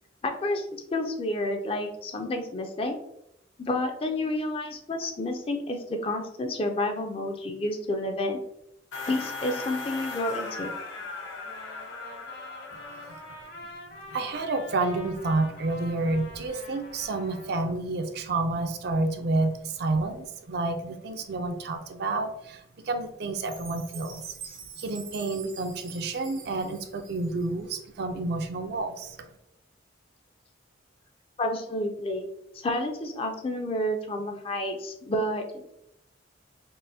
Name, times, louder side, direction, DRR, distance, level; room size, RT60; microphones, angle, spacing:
voice 1, 0.2-0.7 0.9-3.0 3.6-8.4 9.1-10.7 31.4-32.3 32.6-35.7, left 1 dB, 30° left, 4 dB, 0.4 m, -30 dB
sound 1, 8.9-13.4, left 4 dB, 75° left, 0.8 m, -37 dB
Trumpet, 11.0-17.5, left 1 dB, 55° left, 1.1 m, -46 dB
voice 2, 14.1-24.3 24.8-29.2, right 2 dB, 55° right, 6 dB, 0.4 m, -29 dB
Chime, 23.4-27.6, right 6 dB, 90° right, 0.8 m, -45 dB
5.4 x 2.1 x 2.7 m, 0.79 s
head